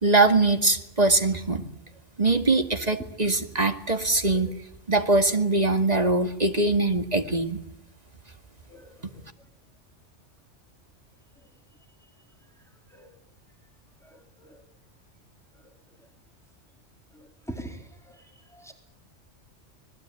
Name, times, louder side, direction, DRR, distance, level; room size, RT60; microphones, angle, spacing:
voice 1, 0.0-1.6 2.2-4.5 4.9-7.6, right 2 dB, 35° right, 6 dB, 2.2 m, -22 dB
voice 2, 8.7-8.9 13.0-13.1 14.4-14.6 17.5-17.8 18.1-18.2 18.5-18.7, right 1 dB, ahead, 3 dB, 3.8 m, -40 dB
26.5 x 20.0 x 9.1 m, 0.79 s
omnidirectional pair, 1.2 m